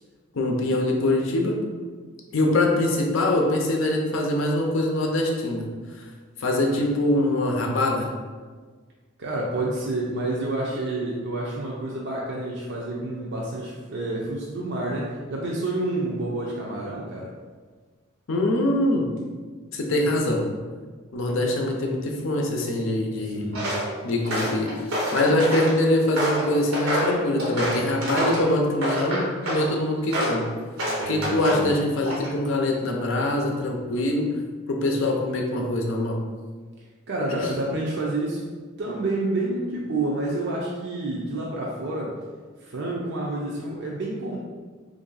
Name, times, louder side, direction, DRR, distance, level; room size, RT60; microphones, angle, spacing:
voice 1, 0.3-1.6 2.3-5.6 6.0-6.1 6.4-8.1 18.3-19.1 19.7-20.5 21.1-23.4 24.0-30.5 31.1-34.3 34.7-36.2 37.3-37.5, left 1 dB, 70° left, 1 dB, 0.5 m, -23 dB
voice 2, 9.2-17.3 23.3-23.8 31.0-31.8 37.1-38.5 38.8-42.1 42.6-44.4, right 2 dB, 60° right, -4 dB, 0.5 m, -29 dB
Walk footsteps, 23.5-23.9 24.2-25.7 26.2-28.5 28.8-29.7 30.1-30.4 30.8-31.7 32.0-32.5, equal, 90° right, 0.9 m, -27 dB
3.2 x 2.6 x 3.9 m, 1.5 s
head